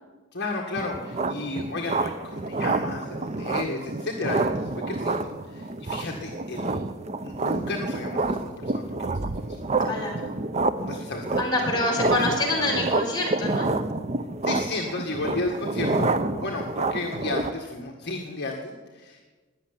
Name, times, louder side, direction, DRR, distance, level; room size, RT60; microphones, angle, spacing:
voice 1, 0.3-6.8 7.2-10.0 10.8-11.7 14.4-19.3, left 2 dB, 50° left, 1 dB, 1.8 m, -33 dB
sound 1, 0.8-17.5, right 3 dB, 30° right, 0.7 m, -28 dB
voice 2, 9.9-10.2 11.4-13.7, left 2 dB, 20° left, -2 dB, 4.7 m, -26 dB
20.0 x 6.8 x 9.9 m, 1.3 s
head